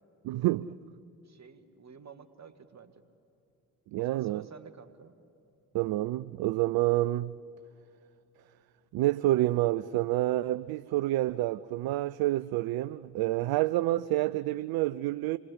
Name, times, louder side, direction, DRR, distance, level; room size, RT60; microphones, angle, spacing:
voice 1, 0.2-0.7 3.9-4.4 5.7-7.4 8.9-15.4, right 16 dB, 55° right, 0.6 m, -28 dB
voice 2, 1.2-3.0 4.0-5.1, right 6 dB, 40° right, 2.0 m, -50 dB
27.0 x 20.5 x 8.6 m
figure-of-eight pair, 40°, 43 cm